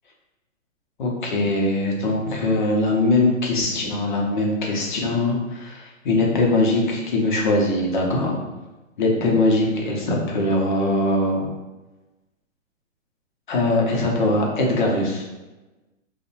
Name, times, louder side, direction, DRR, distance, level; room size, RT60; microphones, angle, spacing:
voice 1, 1.0-8.4 9.0-11.5 13.5-15.3, left 2 dB, 40° left, -1 dB, 0.5 m, -21 dB
2.6 x 2.0 x 2.7 m, 1.1 s
hypercardioid pair, 150°, 40 cm